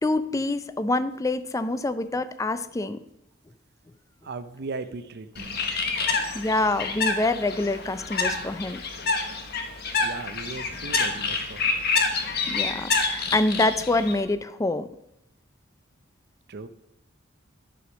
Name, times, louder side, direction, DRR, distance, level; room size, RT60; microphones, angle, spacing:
voice 1, 0.0-3.0 6.3-8.8 12.5-14.9, left 2 dB, 15° left, 12 dB, 0.4 m, -26 dB
voice 2, 4.2-5.6 6.0-6.5 10.0-11.8 16.5-16.7, right 3 dB, 55° right, 11 dB, 0.6 m, -38 dB
Bird, 5.4-14.2, left 4 dB, 55° left, 1.2 m, -28 dB
11.0 x 4.9 x 6.2 m, 0.79 s
head